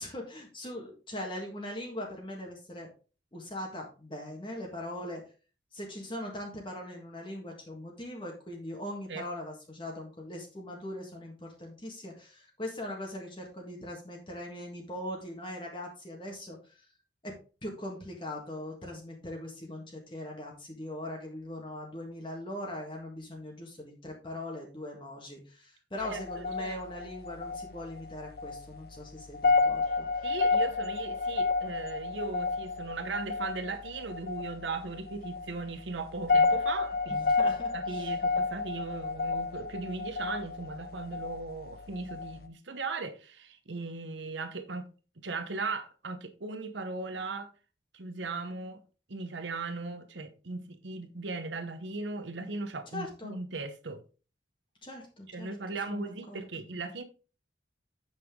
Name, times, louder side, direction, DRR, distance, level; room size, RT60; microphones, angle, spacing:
voice 1, 0.0-2.9 3.3-5.2 5.7-16.9 17.2-30.3 37.1-38.1 52.9-53.4 54.8-55.5 55.9-56.4, left 1 dB, 25° left, 1.7 m, -41 dB
sound 1, 26.0-42.5, left 4 dB, 55° left, 0.7 m, -31 dB
voice 2, 26.0-26.8 29.9-30.0 30.2-44.9 45.2-47.5 47.9-48.8 49.1-54.0 55.3-57.0, right 3 dB, 85° right, 1.0 m, -38 dB
8.9 x 5.8 x 3.7 m
head